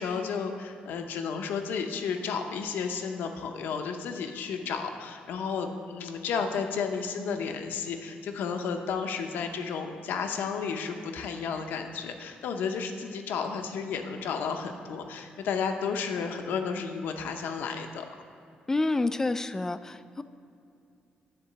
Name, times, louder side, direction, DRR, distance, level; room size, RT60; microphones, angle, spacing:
voice 1, 0.0-18.1, left 6 dB, 85° left, 5 dB, 0.7 m, -32 dB
voice 2, 18.7-20.2, left 2 dB, 15° left, 12 dB, 0.3 m, -28 dB
10.0 x 3.7 x 6.9 m, 2.5 s
cardioid pair, 110°, 3 cm